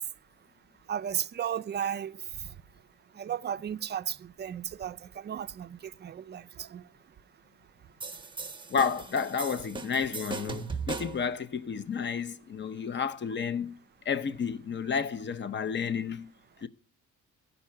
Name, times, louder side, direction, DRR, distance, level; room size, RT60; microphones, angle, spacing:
voice 1, 0.9-2.2 3.2-6.8, right 9 dB, 35° right, 0.4 m, -34 dB
sound 1, 8.0-11.3, right 4 dB, 15° right, 0.9 m, -38 dB
voice 2, 8.7-13.8 14.1-16.3 16.6-16.7, left 6 dB, 40° left, 0.6 m, -31 dB
14.5 x 5.5 x 5.6 m
cardioid pair, 90°, 30 cm